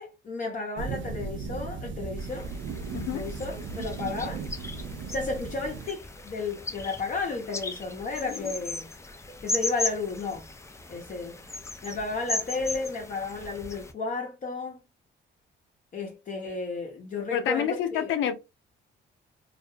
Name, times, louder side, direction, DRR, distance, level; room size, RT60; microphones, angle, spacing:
voice 1, 0.0-2.5 3.1-4.4 5.1-8.9 9.4-10.4 10.9-11.4 11.8-14.8 15.9-18.1, left 3 dB, 40° left, 0.7 m, -33 dB
sound 1, 0.7-5.9, right 5 dB, 70° right, 0.4 m, -36 dB
sound 2, 2.2-13.9, left 3 dB, 15° left, 0.4 m, -37 dB
voice 2, 2.9-3.3 8.2-8.5 17.3-18.3, left 9 dB, 80° left, 0.6 m, -28 dB
2.4 x 2.2 x 2.7 m
cardioid pair, 90°, 20 cm